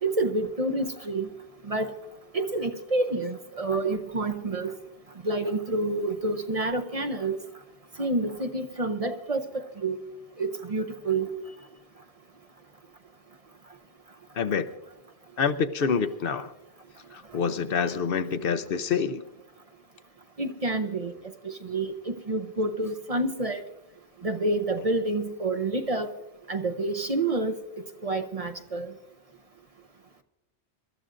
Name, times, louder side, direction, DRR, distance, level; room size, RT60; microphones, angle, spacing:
voice 1, 0.0-1.3 1.6-1.9 2.3-4.7 5.2-7.4 8.0-10.0 10.4-11.3 20.4-23.6 24.2-26.1 26.5-27.6 28.0-28.9, right 2 dB, 40° right, 0.7 m, -28 dB
voice 2, 14.4-14.7 15.4-16.5 17.1-19.2, left 6 dB, 65° left, 0.8 m, -27 dB
25.5 x 13.0 x 2.6 m
omnidirectional pair, 1.1 m